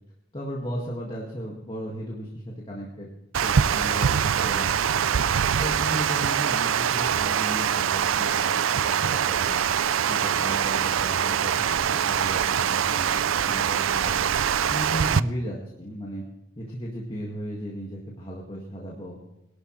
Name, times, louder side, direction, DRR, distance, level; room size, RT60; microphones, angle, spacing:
voice 1, 0.3-3.1 3.4-5.1 5.6-9.7 10.1-11.7 11.9-14.2 14.4-16.2 16.6-19.2, equal, 25° left, -3 dB, 2.0 m, -35 dB
Water, 3.3-15.2, right 8 dB, 85° right, 0.5 m, -24 dB
21.5 x 12.5 x 3.2 m, 0.93 s
head